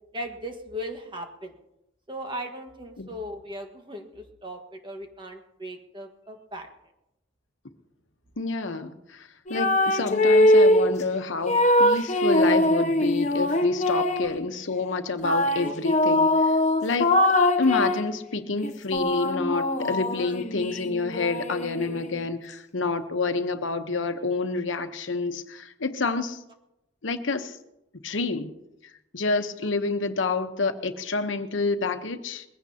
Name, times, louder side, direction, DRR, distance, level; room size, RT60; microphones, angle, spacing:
voice 1, 0.1-1.5 2.1-6.7 15.6-16.2 21.8-22.0, equal, 25° right, 4 dB, 1.6 m, -38 dB
voice 2, 8.4-16.5 16.8-17.3 17.6-26.4 27.0-27.6 28.0-28.5 29.1-32.4, left 3 dB, 80° left, 8 dB, 1.0 m, -28 dB
sound 1, 9.5-10.9 11.5-14.4 15.2-18.1 18.6-22.3, left 1 dB, 35° left, 0.8 m, -22 dB
21.0 x 16.0 x 2.9 m, 0.88 s
head